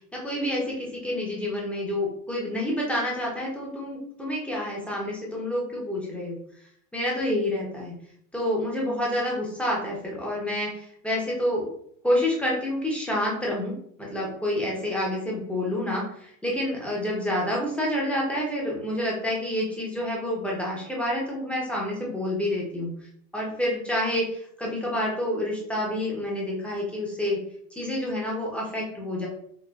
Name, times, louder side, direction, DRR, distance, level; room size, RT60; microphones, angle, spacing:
voice 1, 0.1-6.4 6.9-7.9 8.3-11.7 12.0-22.9 23.3-27.4 27.7-29.3, left 1 dB, 5° left, -4 dB, 0.8 m, -28 dB
4.0 x 2.4 x 2.3 m, 0.67 s
hypercardioid pair, 110°, 48 cm